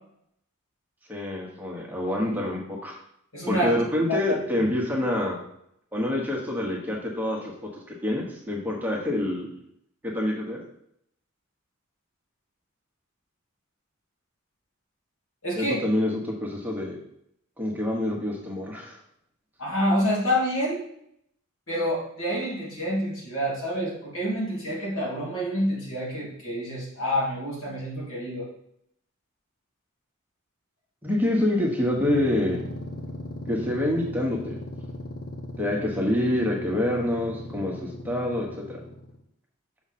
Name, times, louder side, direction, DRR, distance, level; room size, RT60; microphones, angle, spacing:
voice 1, 1.1-3.0 3.5-5.4 5.9-7.5 7.9-9.5 10.0-10.6 15.5-17.0 17.6-19.0 31.0-32.6 33.5-34.6 35.6-38.8, left 1 dB, 10° right, -2 dB, 1.1 m, -26 dB
voice 2, 3.3-3.7 4.1-4.7 15.4-15.8 19.6-20.8 21.7-28.5, equal, 80° left, -4 dB, 2.7 m, -27 dB
sound 1, 31.8-39.2, left 1 dB, 50° left, 0.9 m, -38 dB
6.2 x 5.0 x 4.2 m, 0.72 s
head